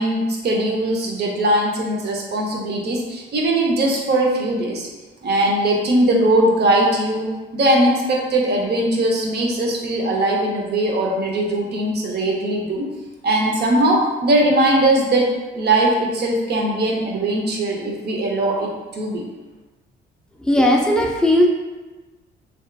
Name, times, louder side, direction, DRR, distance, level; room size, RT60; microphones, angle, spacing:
voice 1, 0.0-4.9 5.2-7.3 7.5-12.9 13.2-19.2, right 1 dB, 55° right, -1 dB, 0.6 m, -20 dB
voice 2, 20.4-21.5, left 1 dB, 5° left, 0 dB, 0.4 m, -16 dB
2.7 x 2.3 x 2.2 m, 1.2 s
cardioid pair, 90°, 20 cm